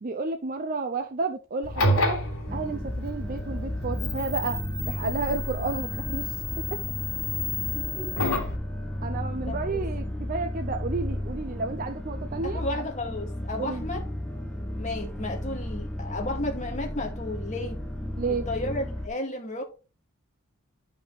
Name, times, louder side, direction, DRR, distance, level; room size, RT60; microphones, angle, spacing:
voice 1, 0.0-2.2 2.5-4.6 4.9-6.8 9.0-12.6 13.6-13.8 18.2-18.5, right 3 dB, 40° right, 0.5 m, -31 dB
sound 1, 1.6-8.6, left 1 dB, 90° left, 3.0 m, -30 dB
sound 2, 2.5-19.1, left 1 dB, 5° left, 0.9 m, -34 dB
voice 2, 7.7-8.1 9.5-9.8 12.4-14.0 14.8-17.8 18.3-19.6, left 2 dB, 35° left, 2.1 m, -33 dB
11.5 x 5.6 x 3.2 m
head